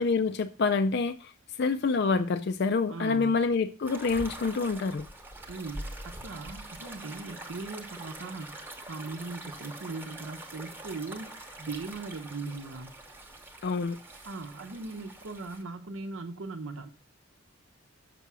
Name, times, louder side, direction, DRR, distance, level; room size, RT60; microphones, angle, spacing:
voice 1, 0.0-1.3 1.6-5.1 13.6-14.0, left 4 dB, 50° left, 0.4 m, -27 dB
voice 2, 2.9-3.4 5.5-12.9 14.2-16.9, right 3 dB, 75° right, 0.8 m, -39 dB
sound 1, 3.8-15.6, right 1 dB, 10° right, 0.9 m, -44 dB
6.8 x 5.6 x 6.0 m
head